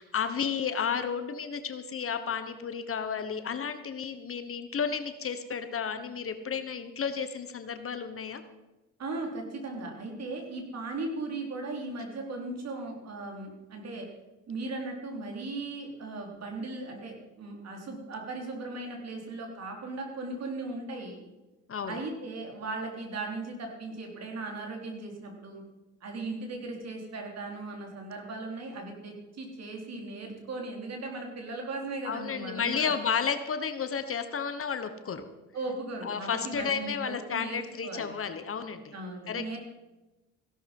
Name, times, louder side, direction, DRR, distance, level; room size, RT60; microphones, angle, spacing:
voice 1, 0.0-8.4 21.7-22.0 32.0-35.3 36.0-38.9 39.3-39.6, left 6 dB, 45° left, 9 dB, 1.3 m, -32 dB
voice 2, 9.0-14.1 14.5-21.2 21.9-25.6 26.0-32.9 35.5-38.1 38.9-39.6, right 2 dB, 60° right, 1 dB, 4.2 m, -37 dB
16.0 x 12.0 x 5.5 m, 1.1 s
cardioid pair, 90°, 30 cm